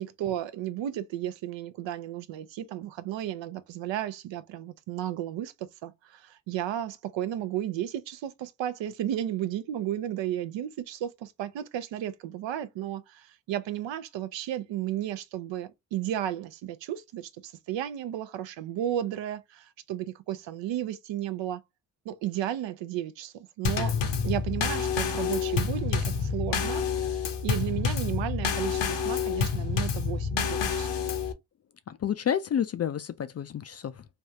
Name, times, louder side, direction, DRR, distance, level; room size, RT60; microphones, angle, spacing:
voice 1, 0.0-5.5 5.8-21.6 22.1-24.0 24.2-30.9, right 11 dB, 65° right, 0.6 m, -33 dB
Drum kit / Snare drum / Bass drum, 23.6-31.3, left 6 dB, 60° left, 0.8 m, -28 dB
voice 2, 31.9-34.1, left 9 dB, 35° left, 0.4 m, -30 dB
3.4 x 2.3 x 2.7 m
hypercardioid pair, 45°, 48 cm